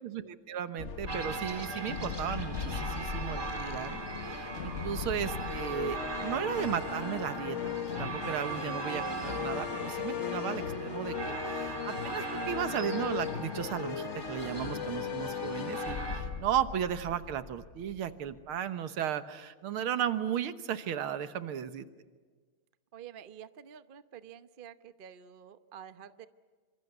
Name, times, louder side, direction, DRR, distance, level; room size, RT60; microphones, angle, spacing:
voice 1, 0.0-4.0 4.2-7.6 8.0-21.9, right 9 dB, 75° right, 11 dB, 2.0 m, -35 dB
sound 1, 0.8-18.4, left 7 dB, 50° left, 0.9 m, -38 dB
sound 2, 1.1-16.2, right 3 dB, 10° right, 2.9 m, -40 dB
voice 2, 22.9-26.3, right 9 dB, 60° right, 12 dB, 0.5 m, -49 dB
26.5 x 25.5 x 8.1 m, 1.4 s
omnidirectional pair, 2.4 m